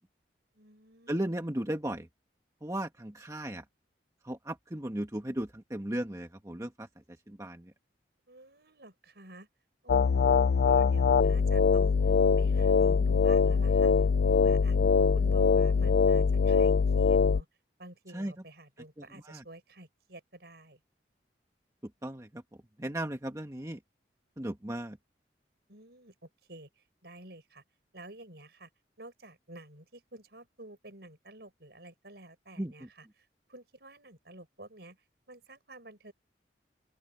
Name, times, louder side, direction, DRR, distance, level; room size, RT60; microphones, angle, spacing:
voice 1, 0.5-1.4 8.3-9.5 9.8-14.8 15.1-17.5 17.8-20.8 25.7-27.6 27.9-28.7 29.0-35.0 35.3-36.1, right 1 dB, 65° right, 6.1 m, -50 dB
voice 2, 1.1-2.1 2.6-3.6 4.2-6.9 7.3-7.7 18.1-18.3 19.3-19.4 22.0-22.4 22.8-23.8 24.4-25.0 32.6-32.7, right 1 dB, 20° right, 1.4 m, -35 dB
sound 1, 9.9-17.4, left 5 dB, 70° left, 0.4 m, -23 dB
open air
head